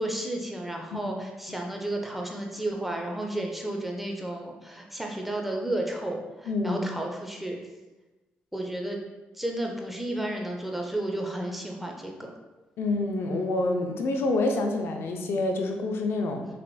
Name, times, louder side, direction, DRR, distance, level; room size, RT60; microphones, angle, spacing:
voice 1, 0.0-7.6 8.5-9.0 9.3-12.3, right 1 dB, 5° right, 1 dB, 0.6 m, -32 dB
voice 2, 6.5-6.8 12.8-16.5, left 2 dB, 65° left, 4 dB, 0.5 m, -27 dB
3.9 x 3.0 x 2.2 m, 1.1 s
supercardioid pair, 60°, 4 cm